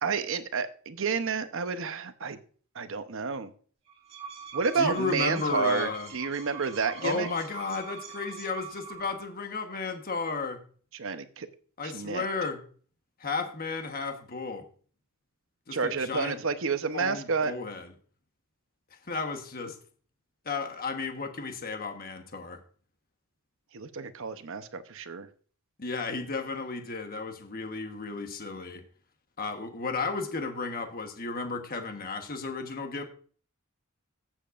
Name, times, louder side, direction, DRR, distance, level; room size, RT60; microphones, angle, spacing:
voice 1, 0.0-2.4 2.7-3.5 4.5-7.3 10.9-11.5 11.8-12.2 15.7-17.5 23.7-25.3, right 5 dB, 65° right, 10 dB, 0.8 m, -30 dB
sound 1, 3.9-9.3, right 5 dB, 30° right, 2.1 m, -43 dB
voice 2, 4.8-6.1 7.0-10.6 11.8-12.6 13.2-14.6 15.7-16.4 16.9-17.9 19.0-19.8 20.4-22.6 25.8-28.8 29.4-33.0, left 4 dB, 45° left, 6 dB, 1.2 m, -33 dB
15.0 x 7.4 x 2.5 m, 0.43 s
head